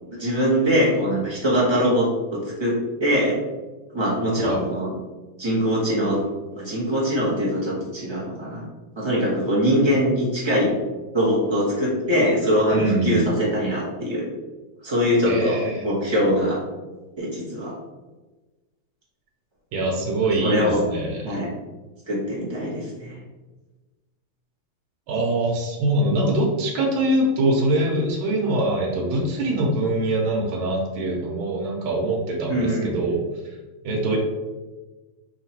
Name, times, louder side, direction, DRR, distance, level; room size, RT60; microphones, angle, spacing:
voice 1, 0.0-3.4 3.9-4.9 5.4-6.2 6.5-8.6 8.9-10.7 11.1-14.3 14.8-16.6 17.2-17.7 20.4-20.8 21.2-21.5 22.1-23.2 32.5-32.9, equal, 25° right, -6 dB, 0.5 m, -22 dB
voice 2, 12.7-13.3 15.3-15.9 19.7-21.4 25.1-33.2 33.8-34.2, right 1 dB, 80° right, -2 dB, 1.6 m, -23 dB
5.0 x 2.9 x 2.9 m, 1.2 s
omnidirectional pair, 2.2 m